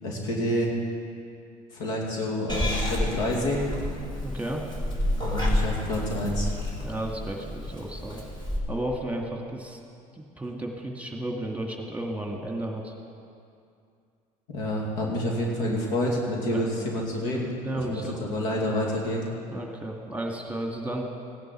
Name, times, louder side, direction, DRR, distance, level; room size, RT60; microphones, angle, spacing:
voice 1, 0.0-0.7 1.7-3.7 5.1-6.5 14.5-17.5 17.9-19.2, left 1 dB, 75° left, -2 dB, 2.7 m, -28 dB
Purr / Meow, 2.5-8.6, left 1 dB, 20° left, 3.1 m, -30 dB
voice 2, 4.2-4.6 6.8-8.2 8.7-9.8 10.1-12.9 16.5-16.7 17.6-18.2 19.5-21.1, right 1 dB, 5° right, 0 dB, 2.1 m, -33 dB
16.5 x 10.5 x 4.6 m, 2.5 s
hypercardioid pair, 70°, 20 cm